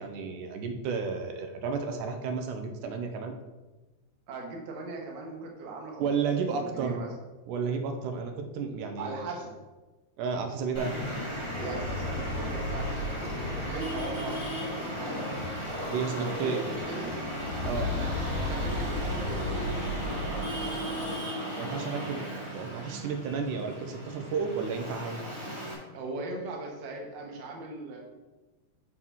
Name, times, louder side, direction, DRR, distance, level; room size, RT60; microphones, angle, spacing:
voice 1, 0.0-3.4 6.0-7.0 7.5-9.3 10.2-11.0 15.9-16.6 17.6-17.9 21.6-22.3 22.5-25.2, right 5 dB, 85° right, 5 dB, 2.2 m, -32 dB
voice 2, 4.3-6.1 6.5-7.1 9.0-9.5 11.6-15.5 16.1-17.2 17.6-21.2 25.9-28.0, right 3 dB, 55° right, 0 dB, 1.2 m, -39 dB
sound 1, 10.7-16.1 16.3-16.4 16.7-21.0, left 2 dB, 75° left, 1.6 m, -36 dB
Traffic noise roadway noise, 10.7-25.7, equal, 15° right, 1.2 m, -36 dB
6.4 x 3.7 x 6.1 m, 1.2 s
omnidirectional pair, 3.6 m